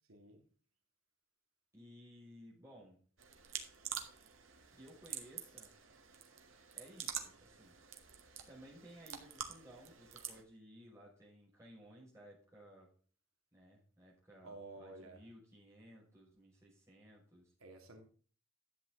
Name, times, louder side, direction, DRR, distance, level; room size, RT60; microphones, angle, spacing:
voice 1, 0.1-0.4 14.4-15.2 17.6-18.0, right 2 dB, 90° right, 3 dB, 2.3 m, -52 dB
voice 2, 1.7-3.0 4.7-5.8 6.8-7.8 8.5-12.9 13.5-17.5, equal, 15° right, -5 dB, 5.6 m, -58 dB
sound 1, 3.2-10.4, right 9 dB, 70° right, 1.7 m, -47 dB
11.5 x 8.4 x 3.9 m, 0.43 s
head